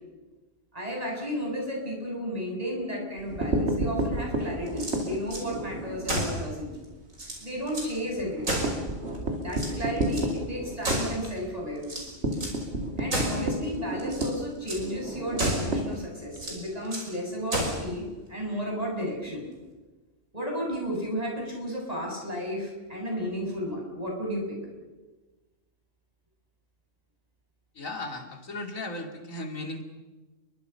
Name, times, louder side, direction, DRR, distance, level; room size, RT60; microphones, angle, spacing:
voice 1, 0.7-6.7 7.4-8.6 9.3-12.2 13.0-19.4 20.3-24.6, equal, 30° right, -1 dB, 7.3 m, -33 dB
sound 1, 3.2-6.4 6.8-6.9 7.2-7.3 7.7-16.5, right 1 dB, 55° right, 3.1 m, -31 dB
sound 2, 4.7-5.5 6.0-6.4 6.8-6.9 7.1-7.9 8.4-9.2 9.5-10.3 10.8-11.4 11.8-12.6 13.1-13.5 14.0-14.4 14.7-14.9 15.4-15.8 16.3-17.1 17.5-17.9, right 1 dB, 80° right, 6.1 m, -31 dB
voice 2, 27.7-29.8, left 2 dB, 80° left, 4 dB, 3.0 m, -36 dB
29.5 x 23.5 x 5.7 m, 1.2 s
omnidirectional pair, 1.4 m